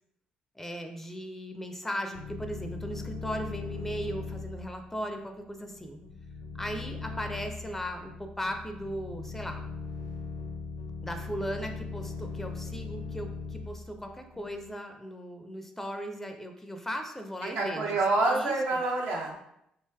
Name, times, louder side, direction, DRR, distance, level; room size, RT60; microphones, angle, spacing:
voice 1, 0.5-6.0 6.5-9.6 11.0-18.0 18.3-18.8, equal, 5° left, 5 dB, 0.4 m, -37 dB
sound 1, 2.1-14.6, left 4 dB, 70° left, 0.4 m, -40 dB
voice 2, 17.4-19.4, right 2 dB, 60° right, -1 dB, 0.6 m, -27 dB
3.1 x 2.8 x 2.2 m, 0.78 s
figure-of-eight pair, 45°, 4 cm